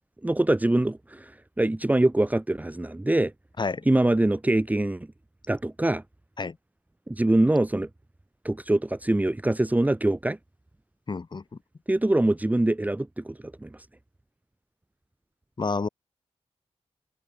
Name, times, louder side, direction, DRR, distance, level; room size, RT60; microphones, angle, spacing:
voice 1, 0.2-1.3 1.6-3.3 3.8-5.1 5.5-6.0 7.1-7.9 8.4-10.4 11.9-13.7, right 1 dB, 15° right, 1.7 m, -24 dB
voice 2, 11.1-11.4 15.6-15.9, left 4 dB, 40° left, 6.9 m, -29 dB
wide cardioid pair, 105°, 11 cm